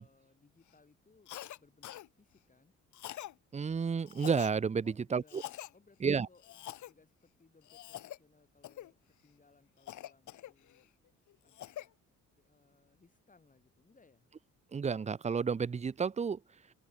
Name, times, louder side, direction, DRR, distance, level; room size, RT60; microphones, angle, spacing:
voice 1, 0.0-2.7 4.8-10.9 11.4-12.0 12.4-14.3, left 4 dB, 25° left, 7.3 m, -66 dB
Cough, 1.3-1.6 1.8-2.1 2.9-3.3 4.1-4.6 5.3-5.7 6.4-6.9 7.6-8.2 8.6-8.9 9.9-10.8 11.3-11.9, left 13 dB, 75° left, 1.7 m, -45 dB
voice 2, 3.5-4.8 5.1-5.4 6.0-6.3 14.7-16.4, right 6 dB, 25° right, 0.6 m, -31 dB
open air
cardioid pair, 90°, 30 cm